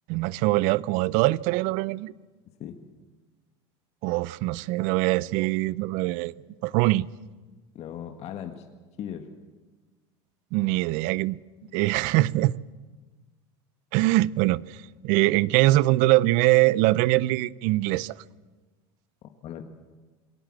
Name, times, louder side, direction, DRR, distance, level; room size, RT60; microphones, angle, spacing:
voice 1, 0.1-2.1 4.0-6.3 6.6-7.1 10.5-11.4 11.7-12.5 13.9-18.2, right 18 dB, 65° right, 0.6 m, -23 dB
voice 2, 7.8-8.6 9.0-9.3 19.4-19.6, left 10 dB, 50° left, 1.7 m, -37 dB
22.0 x 18.0 x 7.6 m
supercardioid pair, 100°, 15 cm